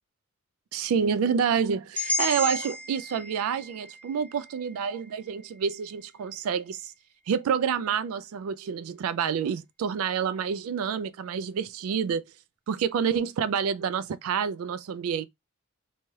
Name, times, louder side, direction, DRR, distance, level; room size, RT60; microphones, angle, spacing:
voice 1, 0.7-6.9 7.3-12.2 12.7-15.3, right 7 dB, 80° right, 0.3 m, -28 dB
sound 1, 2.0-6.0, left 2 dB, 5° left, 0.4 m, -34 dB
2.7 x 2.2 x 3.1 m
head